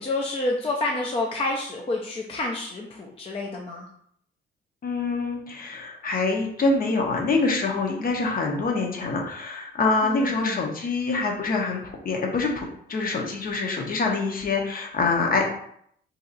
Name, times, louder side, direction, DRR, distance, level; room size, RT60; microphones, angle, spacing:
voice 1, 0.0-3.9 10.0-10.7, left 2 dB, 30° left, -1 dB, 0.5 m, -29 dB
voice 2, 4.8-15.5, left 3 dB, 45° left, 1 dB, 0.8 m, -25 dB
2.8 x 2.3 x 3.9 m, 0.68 s
cardioid pair, 90°, 20 cm